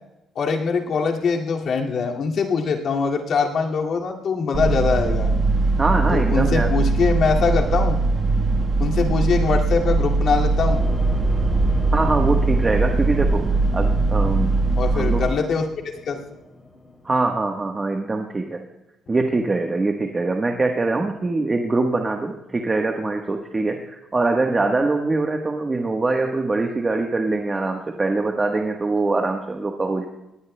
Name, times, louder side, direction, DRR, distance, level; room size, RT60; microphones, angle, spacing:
voice 1, 0.4-5.3 6.1-8.0 8.8-10.8 14.8-15.7 16.1-16.2, left 5 dB, 65° left, 0 dB, 2.2 m, -22 dB
sound 1, 4.5-15.3, right 3 dB, 45° right, 1.3 m, -21 dB
voice 2, 5.8-6.7 11.9-13.5 13.7-14.5 14.9-15.2 17.0-18.6 19.1-30.0, right 3 dB, 25° right, 3 dB, 1.2 m, -23 dB
sound 2, 10.7-17.5, left 1 dB, 10° left, 2.5 m, -34 dB
19.5 x 18.5 x 2.2 m, 0.92 s
cardioid pair, 90°, 0 cm